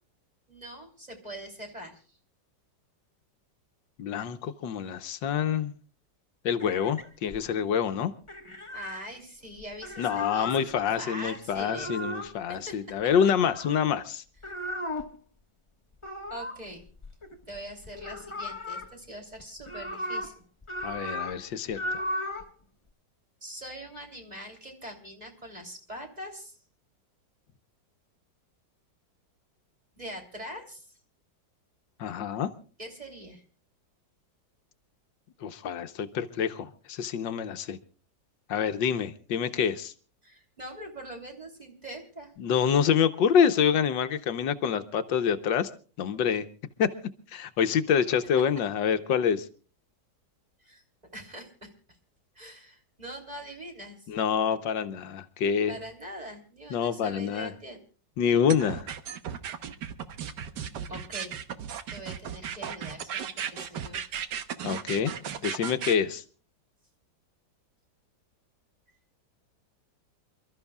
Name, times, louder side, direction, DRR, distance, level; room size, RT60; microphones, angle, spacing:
voice 1, 0.5-2.2 8.7-11.9 12.5-13.0 13.2-13.3 16.3-16.8 17.5-20.4 23.4-26.6 30.0-31.0 32.8-33.4 40.2-42.3 50.6-50.8 51.1-51.7 52.4-54.1 55.7-57.8 60.9-61.4 61.9-64.0 68.9-69.0, right 1 dB, 20° right, 2 dB, 3.3 m, -43 dB
voice 2, 4.0-5.7 6.5-8.1 10.0-14.2 20.8-22.0 32.0-32.5 35.4-37.8 38.5-39.9 42.4-45.7 46.0-46.5 46.8-46.9 47.3-49.5 54.1-55.8 56.7-57.5 58.2-58.9 64.6-65.1 65.4-66.2, left 7 dB, 80° left, 9 dB, 1.6 m, -26 dB
sound 1, 6.6-7.6 8.3-9.0 9.6-10.6 11.5-12.3 13.1-13.9 14.4-15.2 16.0-17.6 17.9-18.9 19.4-20.3 20.6-21.4 21.7-22.5, left 1 dB, 15° left, 1.4 m, -36 dB
sound 2, 58.5-65.9, right 8 dB, 70° right, 1.6 m, -35 dB
29.0 x 13.5 x 2.4 m, 0.39 s
omnidirectional pair, 2.0 m